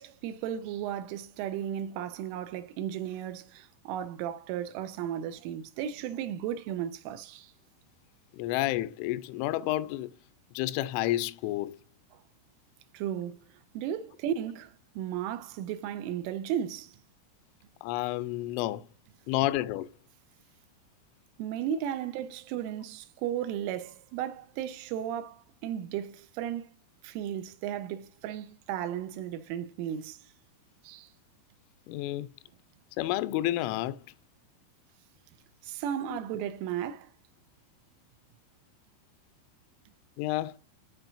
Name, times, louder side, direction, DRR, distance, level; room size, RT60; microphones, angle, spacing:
voice 1, 0.0-7.5 12.9-13.4 13.7-17.0 21.4-26.7 27.0-30.2 30.8-31.1 35.6-37.1, right 10 dB, 90° right, 3.2 m, -35 dB
voice 2, 8.4-10.1 10.5-11.8 17.8-18.8 19.3-19.9 31.9-32.3 33.0-34.0 36.1-36.2 40.2-40.6, left 15 dB, 85° left, 2.9 m, -30 dB
13.0 x 4.4 x 2.6 m
omnidirectional pair, 5.7 m